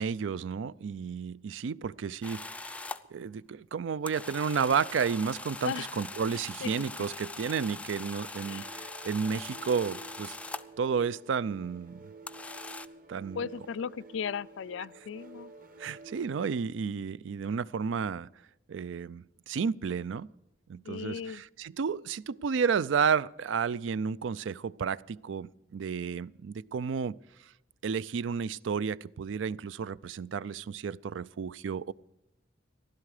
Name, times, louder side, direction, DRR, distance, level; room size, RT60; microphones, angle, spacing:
voice 1, 0.0-2.8 3.1-10.4 10.8-12.0 13.1-13.4 15.8-18.3 18.7-20.3 20.7-27.2 27.4-27.5 27.8-31.9, right 6 dB, 75° right, 0.4 m, -32 dB
sound 1, 2.2-3.0 4.1-10.8 12.3-12.9, left 3 dB, 5° left, 0.4 m, -42 dB
sound 2, 8.2-16.6, right 3 dB, 45° right, 1.3 m, -50 dB
voice 2, 13.4-15.5 20.8-21.4, left 6 dB, 75° left, 0.4 m, -36 dB
15.0 x 12.5 x 4.9 m
head